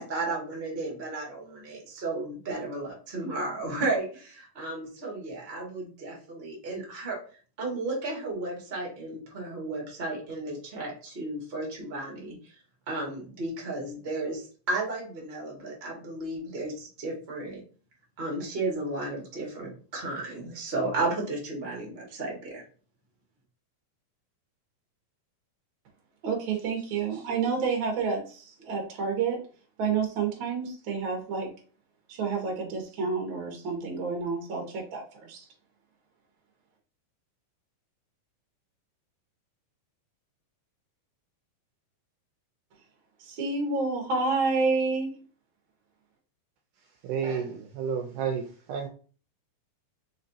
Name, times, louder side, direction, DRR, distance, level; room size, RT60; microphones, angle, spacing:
voice 1, 0.0-7.2 7.6-12.3 12.9-17.6 18.2-22.6, right 2 dB, 30° right, -1 dB, 1.1 m, -33 dB
voice 2, 26.2-29.4 29.8-31.5 32.1-35.4 43.2-45.1, right 4 dB, 60° right, 1 dB, 1.3 m, -29 dB
voice 3, 47.0-48.9, right 6 dB, 80° right, 3 dB, 1.9 m, -31 dB
4.6 x 4.1 x 2.7 m, 0.39 s
omnidirectional pair, 4.0 m